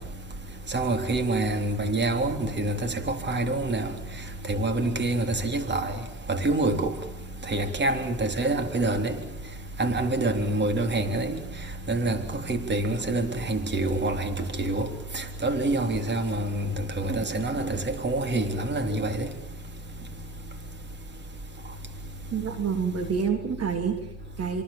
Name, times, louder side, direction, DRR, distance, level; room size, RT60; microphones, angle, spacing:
voice 1, 0.7-3.9 4.5-5.9 6.3-6.9 7.5-9.1 9.8-11.4 11.9-12.2 12.5-14.9 15.1-19.3, right 2 dB, 35° right, 3.8 m, -26 dB
voice 2, 22.3-24.6, right 6 dB, 55° right, 3.2 m, -28 dB
27.5 x 24.0 x 7.6 m
cardioid pair, 90°, 30 cm